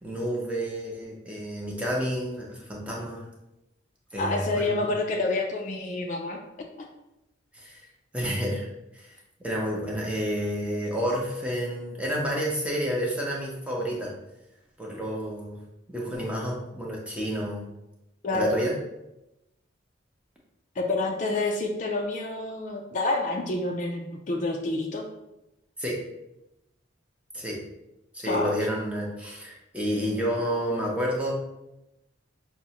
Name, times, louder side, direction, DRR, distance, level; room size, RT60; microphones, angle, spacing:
voice 1, 0.0-3.2 4.1-4.9 7.5-7.9 8.1-8.7 8.9-9.2 9.4-14.1 14.8-15.6 15.9-17.6 18.3-18.7 25.8-26.0 27.3-27.6 28.1-31.3, equal, 5° right, -3 dB, 0.6 m, -30 dB
voice 2, 4.2-6.4 18.2-18.6 20.8-25.1 28.3-28.5, left 2 dB, 40° left, 2 dB, 0.3 m, -28 dB
5.7 x 2.1 x 2.8 m, 0.92 s
head